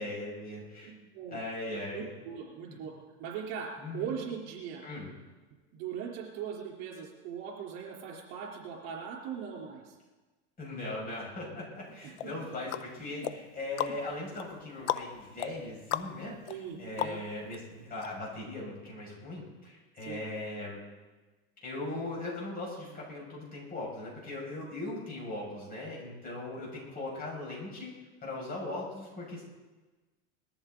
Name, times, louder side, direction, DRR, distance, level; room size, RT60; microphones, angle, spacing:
voice 1, 0.0-0.9 1.3-2.1 2.7-2.8 3.8-4.1 4.8-5.1 10.6-20.8 21.6-27.9 28.2-29.4, left 2 dB, 25° left, -4 dB, 6.4 m, -39 dB
voice 2, 0.8-1.4 1.7-2.9 3.2-4.9 5.7-10.0 12.2-12.3 16.5-17.2 20.0-20.2, right 7 dB, 55° right, -1 dB, 3.8 m, -40 dB
sound 1, 12.2-17.6 18.0-18.1, left 12 dB, 80° left, 0.8 m, -38 dB
20.5 x 14.0 x 4.0 m, 1.3 s
supercardioid pair, 135°, 34 cm